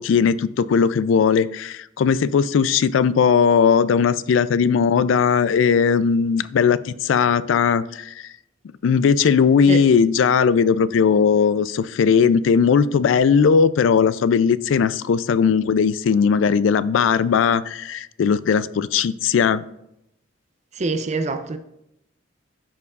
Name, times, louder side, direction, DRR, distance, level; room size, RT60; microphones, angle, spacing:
voice 1, 0.0-8.3 8.8-19.6, left 6 dB, 75° left, 0.3 m, -18 dB
voice 2, 20.8-21.6, right 3 dB, 35° right, 0.5 m, -25 dB
13.0 x 4.6 x 2.4 m
head